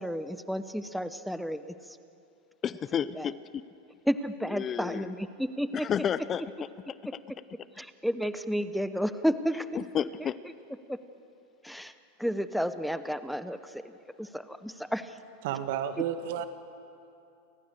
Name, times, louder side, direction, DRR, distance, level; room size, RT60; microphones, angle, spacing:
voice 1, 0.0-1.7 3.2-3.3 4.1-5.9 7.8-9.7 10.9-11.0 11.6-11.9 12.2-13.9 14.2-15.2, equal, ahead, 11 dB, 0.8 m, -31 dB
voice 2, 2.6-3.6 4.5-5.1 5.7-6.7 9.7-10.4, left 8 dB, 30° left, 16 dB, 0.6 m, -31 dB
voice 3, 15.4-16.5, right 9 dB, 65° right, 10 dB, 1.4 m, -31 dB
29.5 x 14.5 x 6.7 m, 2.6 s
hypercardioid pair, 115°, 0 cm